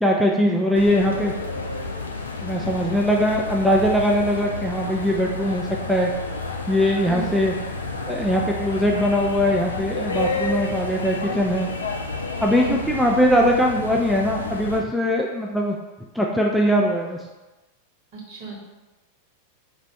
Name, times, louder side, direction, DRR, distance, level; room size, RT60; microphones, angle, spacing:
voice 1, 0.0-1.3 2.4-6.1 6.7-7.5 8.1-11.7 12.4-15.8 16.1-17.2, equal, ahead, -2 dB, 0.3 m, -21 dB
sound 1, 0.7-14.8, left 3 dB, 75° left, 0.4 m, -30 dB
voice 2, 18.1-18.6, right 4 dB, 50° right, -4 dB, 1.3 m, -33 dB
3.3 x 2.4 x 4.4 m, 1.1 s
figure-of-eight pair, 90°, 0 cm